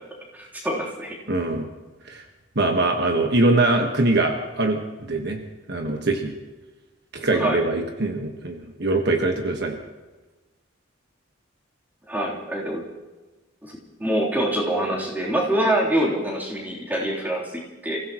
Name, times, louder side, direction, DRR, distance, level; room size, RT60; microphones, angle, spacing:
voice 1, 0.3-1.2 7.3-7.6 12.1-12.8 13.6-18.0, right 1 dB, 10° right, -4 dB, 3.5 m, -25 dB
voice 2, 1.3-1.7 2.0-2.2 2.5-5.4 5.7-6.3 7.1-9.8, right 2 dB, 55° right, 3 dB, 1.5 m, -23 dB
29.5 x 16.0 x 3.1 m, 1.2 s
head